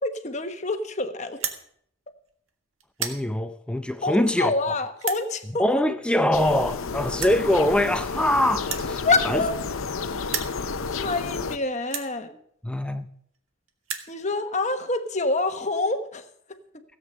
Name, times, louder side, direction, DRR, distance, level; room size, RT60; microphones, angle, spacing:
voice 1, 0.0-1.4 4.0-5.9 9.0-9.5 10.9-12.4 14.1-16.2 16.7-16.8, left 3 dB, 35° left, 1.1 m, -27 dB
sound 1, 1.3-1.6 2.3-2.5 2.8-3.2 4.0-4.1 5.0-5.2 6.3-6.4 6.6-6.7 7.2-7.4 8.6-9.9 10.2-10.6 11.3-11.4 11.9-12.1 13.0-13.1 13.3-13.4 13.7-14.1, right 8 dB, 85° right, 1.7 m, -32 dB
voice 2, 3.0-4.5 5.6-9.4 12.6-13.1, left 1 dB, 5° left, 0.5 m, -23 dB
sound 2, 6.3-11.6, left 4 dB, 85° left, 0.7 m, -31 dB
17.0 x 8.2 x 6.5 m
head